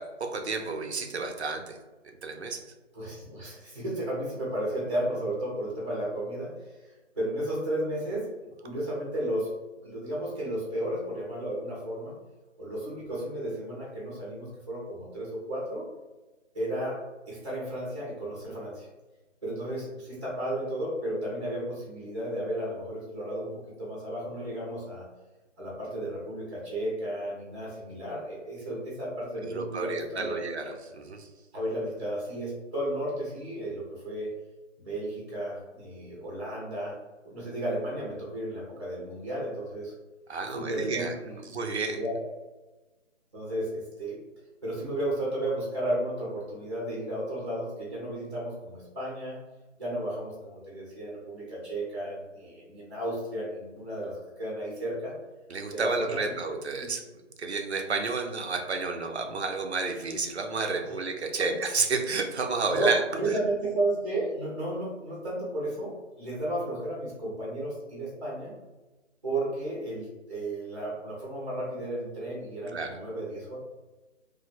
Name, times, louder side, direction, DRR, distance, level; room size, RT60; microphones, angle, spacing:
voice 1, 0.0-1.8 2.2-2.6 29.4-31.3 40.3-41.1 41.5-42.0 55.5-57.0 57.4-63.0 72.7-72.9, right 4 dB, 60° right, 4 dB, 0.5 m, -31 dB
voice 2, 2.9-9.5 9.8-12.1 12.6-15.8 16.5-18.9 19.4-23.5 23.8-25.1 25.6-30.4 31.5-34.3 34.8-37.0 37.2-39.9 40.5-41.4 41.9-42.1 43.3-44.2 44.6-49.4 49.8-55.1 55.7-56.2 56.8-56.9 61.4-61.5 62.7-68.6 69.2-73.6, right 1 dB, 25° right, -6 dB, 0.7 m, -33 dB
2.6 x 2.0 x 4.0 m, 1.2 s
figure-of-eight pair, 175°, 38 cm